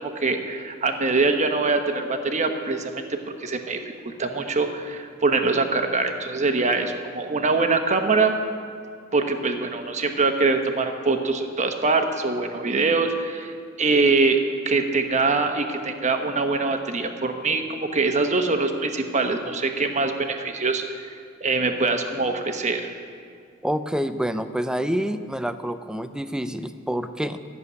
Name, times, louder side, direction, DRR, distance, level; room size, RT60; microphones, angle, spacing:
voice 1, 0.0-8.3 9.1-13.5 13.8-14.4 14.7-21.1 21.4-22.8, right 3 dB, 35° right, 6 dB, 1.1 m, -23 dB
voice 2, 23.6-27.4, equal, 5° right, 10 dB, 0.5 m, -27 dB
14.0 x 7.0 x 9.3 m, 2.3 s
head